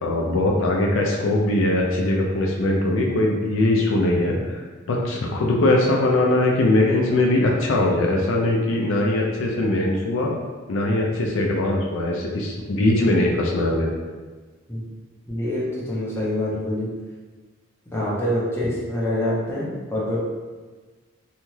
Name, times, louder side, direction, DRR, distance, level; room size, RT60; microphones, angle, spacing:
voice 1, 0.0-10.3 10.7-13.9, left 1 dB, 65° left, -1 dB, 0.4 m, -21 dB
voice 2, 15.3-16.9 17.9-20.2, left 1 dB, 10° left, -7 dB, 0.7 m, -25 dB
2.8 x 2.3 x 3.1 m, 1.3 s
head